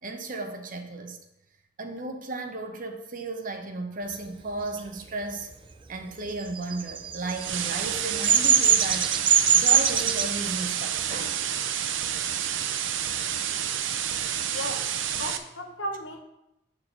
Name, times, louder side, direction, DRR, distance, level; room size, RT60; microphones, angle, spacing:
voice 1, 0.0-1.2 1.8-5.5 5.9-9.1 9.5-11.4, right 2 dB, 45° right, 0.9 m, -34 dB
Bird vocalization bird call bird song, 6.5-10.3, right 8 dB, 25° right, 0.4 m, -21 dB
sound 1, 7.3-15.4, right 9 dB, 85° right, 0.6 m, -29 dB
voice 2, 14.5-14.9 15.2-16.2, equal, 75° left, 1.2 m, -35 dB
8.8 x 4.1 x 5.9 m
head